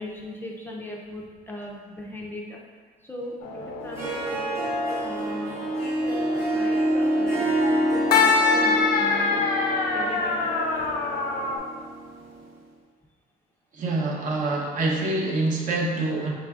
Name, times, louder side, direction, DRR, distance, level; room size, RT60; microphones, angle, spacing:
voice 1, 0.0-2.6 3.0-4.7 5.0-9.5 9.9-10.5 10.7-10.9, left 1 dB, 10° left, -2 dB, 0.4 m, -39 dB
sound 1, 3.4-11.6, left 4 dB, 65° left, 0.5 m, -26 dB
Harp, 3.8-12.4, right 1 dB, 15° right, 1.0 m, -27 dB
voice 2, 13.7-16.3, right 2 dB, 50° right, -1 dB, 0.7 m, -26 dB
4.0 x 3.8 x 2.3 m, 1.5 s
cardioid pair, 110°, 17 cm